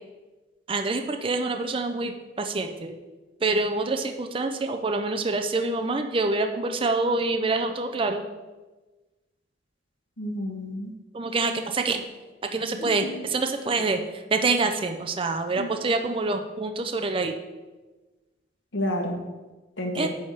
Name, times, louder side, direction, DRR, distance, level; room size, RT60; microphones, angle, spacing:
voice 1, 0.7-2.9 3.4-8.2 11.1-12.0 12.4-17.3 19.9-20.1, right 3 dB, 30° right, 6 dB, 0.5 m, -26 dB
voice 2, 10.2-10.9 12.8-13.3 15.6-15.7 18.7-19.2 19.8-20.1, left 1 dB, 90° left, 1 dB, 1.2 m, -30 dB
9.6 x 3.5 x 6.5 m, 1.2 s
head